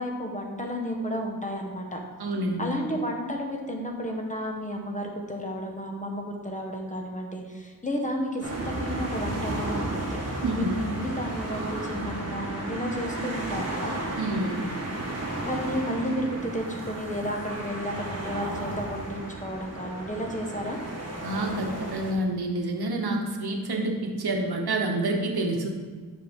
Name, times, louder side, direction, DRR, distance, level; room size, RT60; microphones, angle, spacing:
voice 1, 0.0-2.0 2.6-13.9 15.4-20.8, equal, 20° left, 1 dB, 1.1 m, -32 dB
voice 2, 2.2-2.6 10.4-10.8 14.2-14.7 21.2-25.7, right 2 dB, 80° right, 2 dB, 1.0 m, -28 dB
sound 1, 8.4-22.1, right 2 dB, 40° right, 1.5 m, -33 dB
7.5 x 5.9 x 3.6 m, 1.5 s
wide cardioid pair, 75°, 38 cm